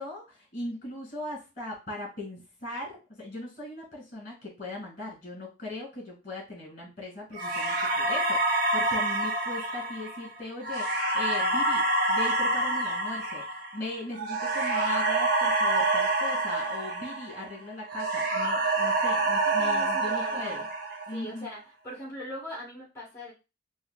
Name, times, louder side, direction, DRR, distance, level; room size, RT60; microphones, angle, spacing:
voice 1, 0.0-11.8 12.1-20.7 21.1-21.5, left 2 dB, 45° left, -2 dB, 1.8 m, -39 dB
sound 1, 7.4-17.6 17.9-21.3, right 2 dB, 50° right, 0.7 m, -27 dB
voice 2, 19.6-20.6 21.1-23.3, equal, 15° left, -6 dB, 1.5 m, -41 dB
4.3 x 2.0 x 2.3 m, 0.28 s
head